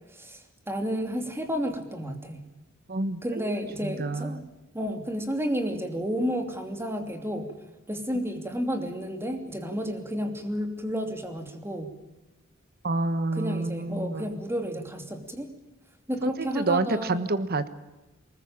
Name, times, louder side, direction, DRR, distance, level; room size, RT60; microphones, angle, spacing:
voice 1, 0.1-2.5 3.2-4.4 4.7-7.5 7.9-11.9 13.3-15.5 16.1-17.2, equal, 10° right, 6 dB, 2.9 m, -31 dB
voice 2, 2.9-3.5 3.8-4.4 12.8-14.3 16.2-17.7, right 2 dB, 50° right, 13 dB, 1.4 m, -28 dB
23.5 x 20.5 x 8.8 m, 1.0 s
head